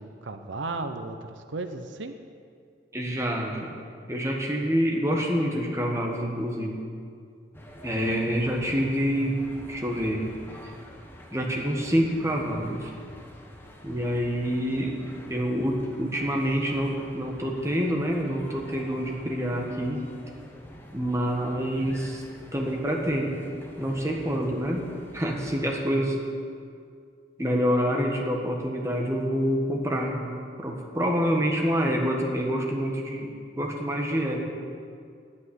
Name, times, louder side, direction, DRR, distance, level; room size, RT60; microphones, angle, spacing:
voice 1, 0.0-2.1, right 3 dB, 80° right, 8 dB, 0.8 m, -35 dB
voice 2, 2.9-3.8 4.1-6.8 7.8-10.3 10.6-10.7 11.3-12.9 13.8-15.0 15.3-20.1 20.9-22.2 22.5-23.4 23.8-24.9 25.1-26.2 27.4-34.4, equal, 15° right, 0 dB, 1.3 m, -27 dB
sound 1, 7.5-25.9, equal, 10° left, 1.1 m, -47 dB
9.6 x 8.5 x 9.7 m, 2.3 s
head